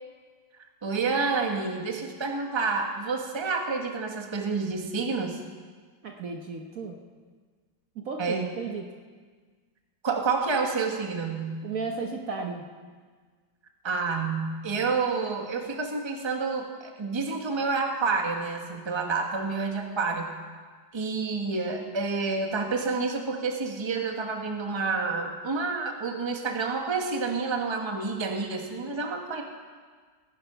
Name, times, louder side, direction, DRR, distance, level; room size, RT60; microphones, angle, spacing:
voice 1, 0.8-5.4 8.2-8.5 10.0-11.6 13.8-20.3 20.9-29.4, right 4 dB, 20° right, 3 dB, 1.1 m, -29 dB
voice 2, 6.0-7.0 8.0-8.9 11.6-12.7, right 4 dB, 55° right, 2 dB, 1.2 m, -34 dB
18.5 x 10.0 x 5.5 m, 1.5 s
omnidirectional pair, 2.0 m